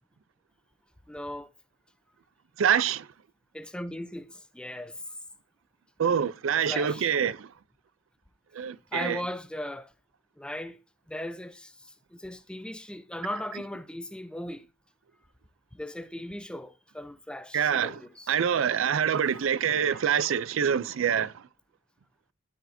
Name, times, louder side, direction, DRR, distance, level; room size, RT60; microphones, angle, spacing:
voice 1, 1.1-1.5 3.5-5.0 6.6-7.1 8.9-9.9 10.4-10.8 11.1-11.7 12.1-14.6 15.7-18.7 19.8-20.0, left 1 dB, 5° left, 0.6 m, -38 dB
voice 2, 2.6-3.1 6.0-7.5 8.5-9.2 17.5-18.0 18.3-21.3, right 8 dB, 70° right, 0.4 m, -25 dB
12.5 x 4.9 x 2.6 m
head